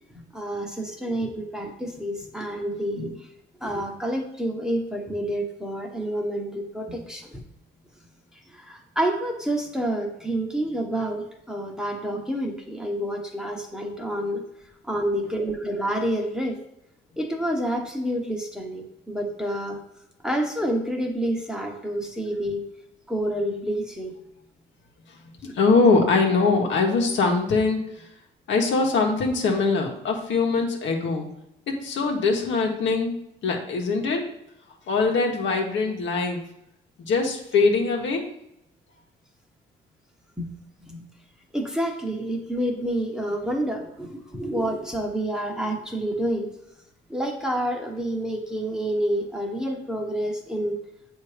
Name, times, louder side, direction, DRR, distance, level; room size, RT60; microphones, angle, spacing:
voice 1, 0.3-3.2 3.6-7.4 8.5-14.4 14.8-16.6 17.2-19.8 20.2-22.7 23.1-24.1 40.4-40.5 40.9-41.1 41.5-46.5 47.1-50.8, right 1 dB, 5° right, 1 dB, 1.0 m, -28 dB
voice 2, 25.1-28.1 28.5-31.3 31.7-33.2 33.4-34.3 34.9-36.4 37.0-38.2, left 4 dB, 70° left, 1 dB, 1.2 m, -22 dB
7.4 x 2.8 x 5.0 m, 0.83 s
cardioid pair, 90°, 20 cm